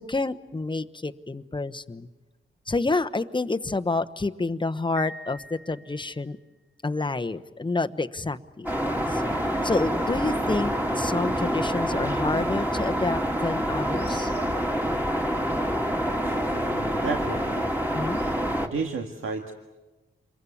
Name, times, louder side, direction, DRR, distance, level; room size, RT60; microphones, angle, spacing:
voice 1, 0.0-2.1 2.7-6.4 6.8-9.2 9.6-14.3 17.9-18.2, left 3 dB, 20° left, 10 dB, 1.1 m, -29 dB
Piano, 5.0-6.4, equal, 70° left, 1.5 m, -44 dB
sound 1, 8.7-18.7, equal, 10° right, 2.8 m, -27 dB
voice 2, 16.5-17.8 18.6-19.5, right 4 dB, 80° right, 3 dB, 1.9 m, -32 dB
28.5 x 22.5 x 8.6 m, 1.2 s
cardioid pair, 70°, 21 cm